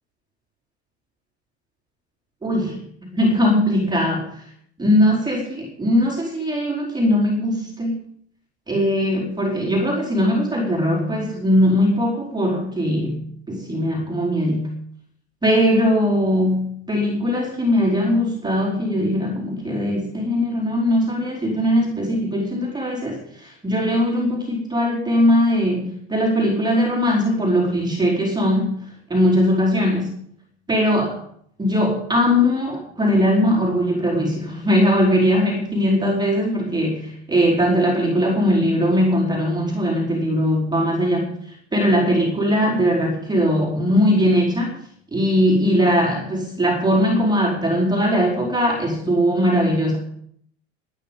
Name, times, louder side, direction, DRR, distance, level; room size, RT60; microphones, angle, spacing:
voice 1, 2.4-2.8 3.0-4.3 4.8-8.0 8.7-13.2 13.5-14.7 15.4-28.8 29.1-30.1 30.7-31.2 31.6-41.3 41.7-44.7 45.1-50.0, equal, 10° right, -2 dB, 4.5 m, -20 dB
20.5 x 9.9 x 5.4 m, 0.65 s
supercardioid pair, 140°, 36 cm